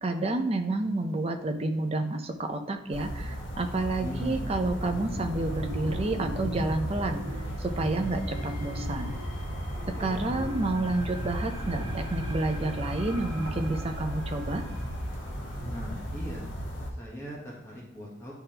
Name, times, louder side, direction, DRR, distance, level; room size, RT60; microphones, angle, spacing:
voice 1, 0.0-7.2 7.6-9.2 10.0-14.7, right 2 dB, 30° right, 5 dB, 0.6 m, -30 dB
sound 1, 2.9-16.9, equal, 65° left, 1.3 m, -36 dB
voice 2, 4.0-4.5 9.9-10.4 15.6-16.5 17.0-18.3, equal, 15° left, -4 dB, 1.1 m, -39 dB
sound 2, 4.0-16.0, equal, 70° right, 1.2 m, -39 dB
9.7 x 3.4 x 2.9 m, 0.78 s
head